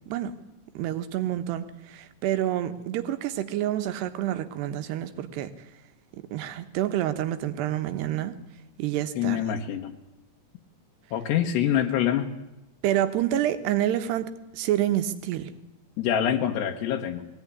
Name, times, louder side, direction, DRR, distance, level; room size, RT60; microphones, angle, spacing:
voice 1, 0.7-5.5 6.3-8.3 8.8-9.4 12.8-15.5, right 12 dB, 80° right, 10 dB, 3.2 m, -28 dB
voice 2, 9.2-9.9 11.1-12.3 16.0-17.3, left 10 dB, 85° left, 3 dB, 3.4 m, -25 dB
21.0 x 17.5 x 9.8 m, 0.94 s
omnidirectional pair, 4.8 m